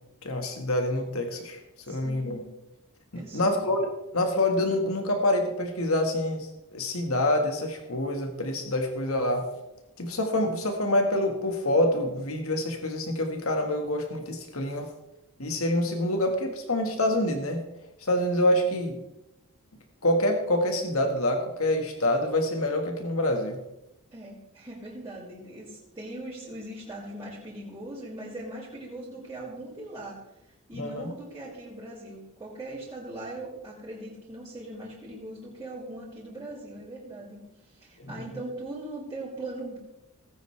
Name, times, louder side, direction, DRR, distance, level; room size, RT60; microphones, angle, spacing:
voice 1, 0.2-1.6 1.9-2.4 3.1-3.9 4.1-9.4 10.0-14.9 15.4-17.6 18.0-19.0 20.0-23.6 30.7-31.1 38.0-38.1, left 1 dB, 70° left, 4 dB, 1.6 m, -26 dB
voice 2, 1.9-2.4 3.1-3.6 24.1-30.2 30.7-39.8, right 1 dB, 15° right, -12 dB, 4.2 m, -40 dB
18.5 x 9.2 x 3.3 m, 0.90 s
head